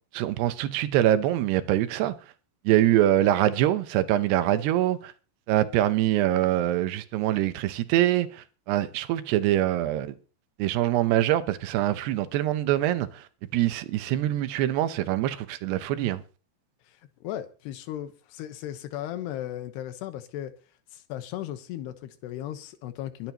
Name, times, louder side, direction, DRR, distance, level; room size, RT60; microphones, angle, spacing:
voice 1, 0.1-2.1 2.6-5.1 5.5-10.2 10.6-13.3 13.5-16.2, right 13 dB, 80° right, 2.8 m, -24 dB
voice 2, 16.9-20.5 20.9-23.3, left 12 dB, 75° left, 3.1 m, -36 dB
22.5 x 10.5 x 3.0 m
omnidirectional pair, 5.0 m